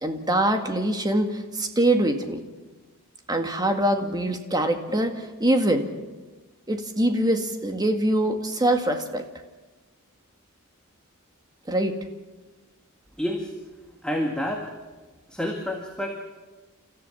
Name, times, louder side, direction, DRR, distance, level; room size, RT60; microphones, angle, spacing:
voice 1, 0.0-2.4 3.3-5.9 6.7-9.3 11.7-12.0, right 1 dB, 20° right, 5 dB, 1.9 m, -24 dB
voice 2, 13.2-13.5 14.0-14.6 15.3-16.1, left 1 dB, 5° left, 1 dB, 1.8 m, -28 dB
30.0 x 14.0 x 7.2 m, 1.2 s
head